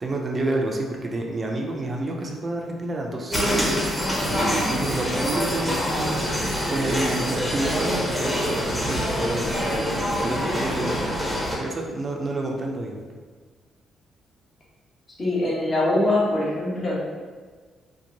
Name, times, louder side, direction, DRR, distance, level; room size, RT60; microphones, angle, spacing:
voice 1, 0.0-3.4 4.3-10.0 10.2-11.1 11.6-13.0, right 2 dB, 30° right, 0 dB, 0.4 m, -29 dB
sound 1, 3.3-11.6, equal, 5° left, 0.8 m, -25 dB
voice 2, 15.2-17.0, left 1 dB, 35° left, -7 dB, 0.9 m, -23 dB
2.8 x 2.1 x 2.6 m, 1.5 s
cardioid pair, 90°, 0 cm